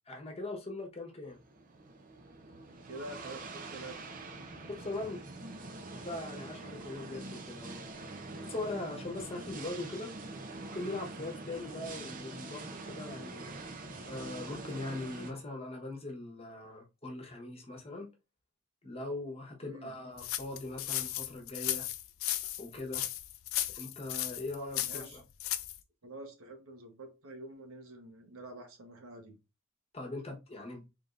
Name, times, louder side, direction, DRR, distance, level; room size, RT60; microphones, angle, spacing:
voice 1, 0.1-1.4 4.6-5.2 6.1-7.8 8.3-10.1 10.7-13.5 14.0-18.1 18.8-21.9 22.6-23.1 23.7-25.2 29.9-30.9, left 2 dB, 30° left, 1.1 m, -41 dB
sound 1, 1.3-15.3, right 2 dB, 40° right, 0.6 m, -45 dB
voice 2, 2.7-4.1 19.6-19.9 24.7-25.2 26.0-29.4, right 2 dB, 80° right, 1.1 m, -47 dB
sound 2, 20.2-25.8, left 13 dB, 75° left, 0.4 m, -35 dB
3.8 x 3.4 x 2.5 m
head